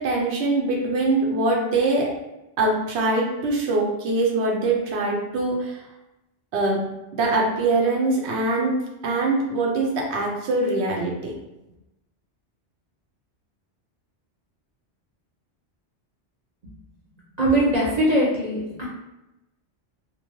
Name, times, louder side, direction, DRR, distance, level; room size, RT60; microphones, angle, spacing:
voice 1, 0.0-2.1 2.6-5.8 6.5-6.8 7.1-8.7 9.0-11.3, right 2 dB, 80° right, -1 dB, 0.9 m, -23 dB
voice 2, 17.4-18.9, right 1 dB, 45° right, -6 dB, 0.7 m, -21 dB
2.7 x 2.1 x 2.9 m, 0.95 s
omnidirectional pair, 1.1 m